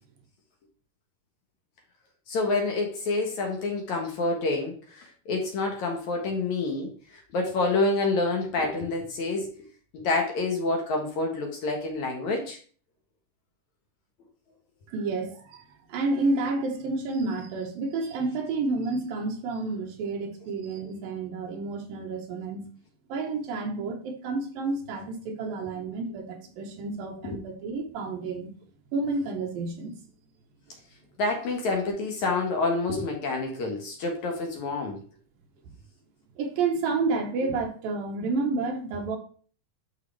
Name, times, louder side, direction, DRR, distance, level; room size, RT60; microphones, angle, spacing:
voice 1, 2.3-9.5 9.9-12.6 27.2-27.4 31.2-35.0, left 3 dB, 60° left, 2 dB, 2.3 m, -28 dB
voice 2, 14.9-22.6 23.1-28.5 28.9-30.0 36.4-39.2, right 3 dB, 75° right, 3 dB, 2.8 m, -30 dB
12.0 x 4.8 x 3.3 m, 0.43 s
omnidirectional pair, 4.3 m